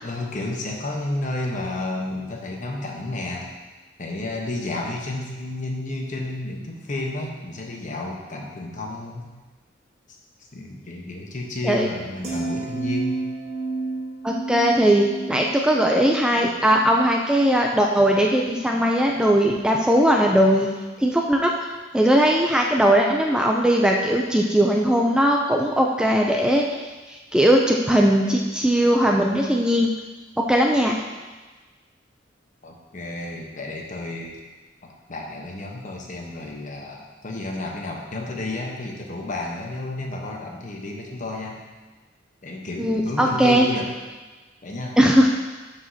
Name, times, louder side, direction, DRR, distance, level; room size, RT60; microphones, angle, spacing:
voice 1, 0.0-3.5 4.0-9.3 10.1-10.2 10.5-13.2 32.6-34.4 34.8-41.6 42.4-43.9 44.6-45.0, left 2 dB, 45° left, 0 dB, 1.0 m, -31 dB
sound 1, 12.2-18.5 18.9-19.2, right 3 dB, 35° right, 1.3 m, -32 dB
voice 2, 14.2-20.7 21.0-21.5 21.9-26.8 27.1-29.9 30.4-31.0 42.8-43.6 45.0-45.3, equal, 5° right, 0 dB, 0.4 m, -19 dB
12.0 x 4.9 x 2.8 m, 1.3 s
head